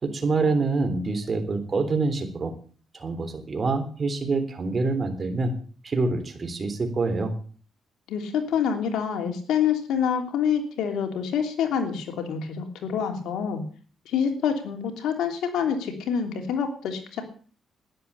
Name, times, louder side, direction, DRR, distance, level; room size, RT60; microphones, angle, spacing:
voice 1, 0.0-2.5 2.9-5.5 5.8-7.3, right 3 dB, 35° right, 7 dB, 3.4 m, -26 dB
voice 2, 8.1-13.6 14.1-17.2, left 7 dB, 80° left, 4 dB, 3.0 m, -26 dB
12.0 x 10.5 x 6.9 m, 0.43 s
cardioid pair, 90°, 0 cm